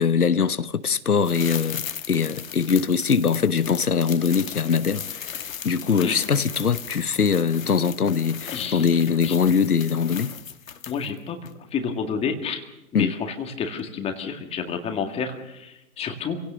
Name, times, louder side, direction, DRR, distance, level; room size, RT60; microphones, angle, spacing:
voice 1, 0.0-10.3 12.9-13.1, left 6 dB, 90° left, 1.1 m, -22 dB
sound 1, 1.2-11.2 11.5-11.6, left 8 dB, 65° left, 1.6 m, -37 dB
voice 2, 8.5-9.0 9.2-9.4 10.9-12.6 12.9-16.4, left 6 dB, 15° left, 2.0 m, -30 dB
28.0 x 17.0 x 6.8 m
figure-of-eight pair, 130°, 43 cm